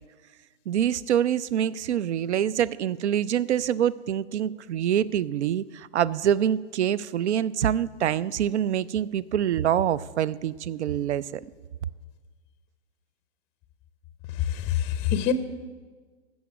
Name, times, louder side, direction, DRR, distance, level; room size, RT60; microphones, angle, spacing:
voice 1, 0.7-11.4, right 10 dB, 70° right, 20 dB, 0.6 m, -25 dB
voice 2, 14.4-15.3, left 10 dB, 20° left, 11 dB, 0.5 m, -25 dB
14.0 x 6.3 x 8.5 m, 1.4 s
hypercardioid pair, 130°, 35 cm